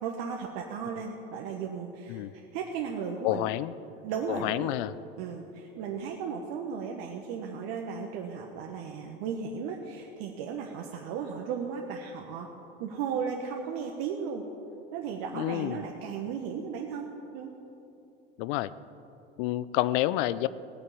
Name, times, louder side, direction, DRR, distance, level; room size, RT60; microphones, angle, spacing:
voice 1, 0.0-2.2 2.5-3.5 4.0-4.7 5.2-12.5 12.8-14.4 14.9-17.5, right 6 dB, 55° right, 1 dB, 1.4 m, -35 dB
voice 2, 3.2-3.7 4.3-5.0 15.3-15.8 18.4-18.7 19.4-20.5, left 15 dB, 55° left, 17 dB, 0.6 m, -29 dB
17.5 x 9.6 x 7.3 m, 2.8 s
hypercardioid pair, 80°, 30 cm